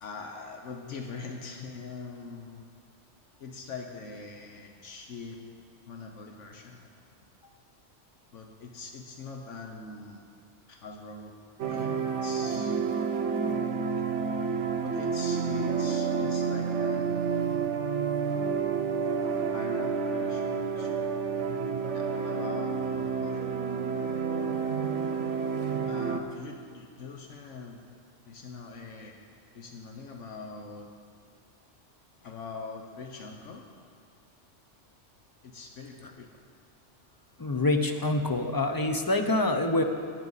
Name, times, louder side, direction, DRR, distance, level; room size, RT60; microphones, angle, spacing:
voice 1, 0.0-2.7 3.4-5.4 5.9-6.9 8.3-10.2 10.7-11.3 11.7-12.8 13.9-14.1 14.8-17.7 19.5-21.2 21.9-23.5 25.9-27.8 28.3-29.2 29.5-30.9 32.2-33.7 35.4-36.3, left 4 dB, 80° left, 2 dB, 1.2 m, -43 dB
sound 1, 11.6-26.2, right 5 dB, 75° right, 1.0 m, -29 dB
voice 2, 37.4-39.8, left 2 dB, 25° left, 5 dB, 0.5 m, -26 dB
16.5 x 9.7 x 4.1 m, 2.2 s
omnidirectional pair, 1.2 m